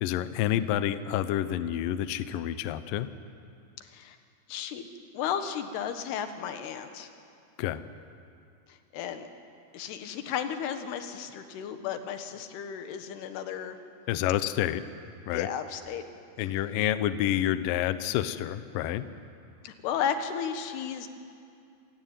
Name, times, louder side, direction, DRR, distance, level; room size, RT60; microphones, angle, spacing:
voice 1, 0.0-3.1 7.6-7.8 14.1-14.8 15.3-15.5 16.4-19.1, left 12 dB, 90° left, 12 dB, 1.9 m, -28 dB
voice 2, 3.8-4.2 4.5-4.9 5.1-7.1 8.7-9.3 9.7-13.8 15.3-16.0 19.6-21.1, left 8 dB, 70° left, 8 dB, 3.2 m, -34 dB
27.0 x 17.5 x 9.1 m, 2.4 s
omnidirectional pair, 5.1 m